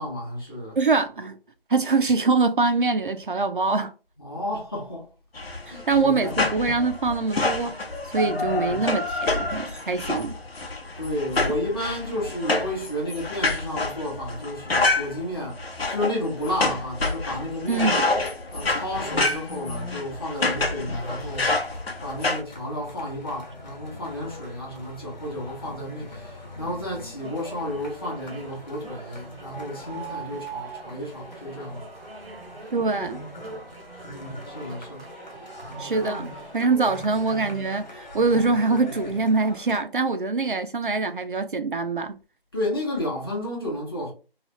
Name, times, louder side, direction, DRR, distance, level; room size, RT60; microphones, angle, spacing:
voice 1, 0.0-0.8 4.2-5.1 5.7-6.4 8.2-8.9 11.0-18.0 18.5-21.5 22.0-31.8 34.0-35.1 36.0-36.3 36.7-37.0 38.3-38.5 42.5-44.1, left 1 dB, 25° left, 0.9 m, -32 dB
voice 2, 0.8-1.4 1.7-3.9 5.7-10.4 17.7-18.1 32.7-33.2 35.8-36.3 36.5-42.2, right 3 dB, 60° right, 0.4 m, -24 dB
sound 1, 5.4-22.4, left 2 dB, 80° left, 0.9 m, -28 dB
sound 2, 21.0-39.8, left 1 dB, 45° left, 1.1 m, -42 dB
sound 3, 27.2-37.7, right 5 dB, 80° right, 0.8 m, -43 dB
3.2 x 2.3 x 2.9 m
figure-of-eight pair, 165°, 30 cm